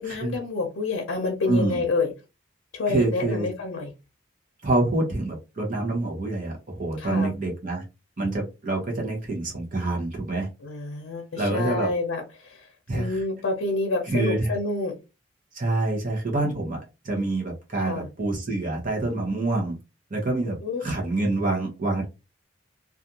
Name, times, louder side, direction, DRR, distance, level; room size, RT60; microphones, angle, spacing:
voice 1, 0.0-2.1 2.7-3.9 7.0-7.3 10.6-15.0 17.8-18.1 20.5-20.8, left 3 dB, 80° left, 0.6 m, -28 dB
voice 2, 1.5-1.8 2.9-3.5 4.6-7.8 8.2-10.5 11.4-11.9 12.9-13.2 14.1-14.5 15.5-19.8 20.1-22.0, right 2 dB, 40° right, 0.8 m, -26 dB
2.5 x 2.3 x 2.7 m
head